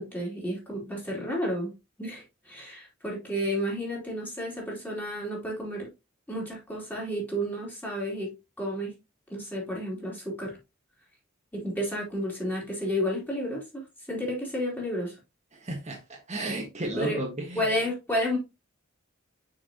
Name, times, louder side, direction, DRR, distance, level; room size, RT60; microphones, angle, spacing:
voice 1, 0.0-1.7 2.0-5.9 6.3-8.3 8.6-8.9 9.3-10.6 11.5-15.1 16.9-17.2 17.5-18.4, equal, 10° left, -3 dB, 3.3 m, -31 dB
voice 2, 15.5-17.7, right 1 dB, 35° right, 0 dB, 1.6 m, -33 dB
6.4 x 6.0 x 2.9 m, 0.25 s
head